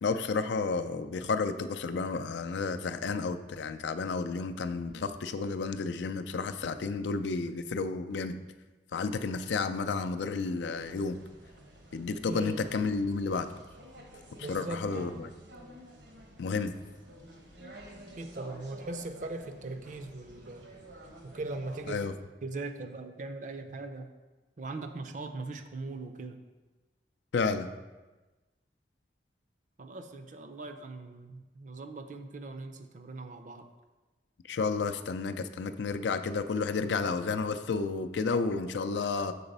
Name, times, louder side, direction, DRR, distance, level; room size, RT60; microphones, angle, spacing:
voice 1, 0.0-8.4 8.9-11.2 11.9-13.5 14.5-15.3 16.4-16.8 21.9-22.1 27.3-27.7 34.5-39.3, left 4 dB, 80° left, 9 dB, 0.4 m, -31 dB
sound 1, 10.7-22.1, right 1 dB, 80° right, 1.1 m, -50 dB
voice 2, 12.3-12.7 14.4-15.2 18.2-20.7 21.2-22.0 22.4-24.1 24.6-26.4 29.8-33.7, right 2 dB, 45° right, 7 dB, 0.5 m, -40 dB
6.8 x 4.0 x 5.3 m, 1.2 s
head